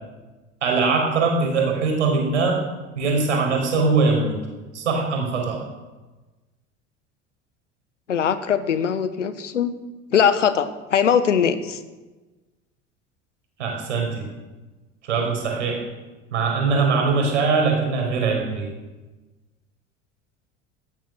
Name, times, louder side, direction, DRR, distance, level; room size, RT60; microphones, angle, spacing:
voice 1, 0.6-2.6 3.0-4.4 4.7-5.6 13.6-14.2 15.0-15.8 16.3-18.7, right 4 dB, 75° right, 1 dB, 5.5 m, -21 dB
voice 2, 8.1-9.8 10.1-11.8, left 7 dB, 80° left, 13 dB, 1.4 m, -21 dB
17.0 x 13.0 x 6.5 m, 1.2 s
figure-of-eight pair, 70°, 36 cm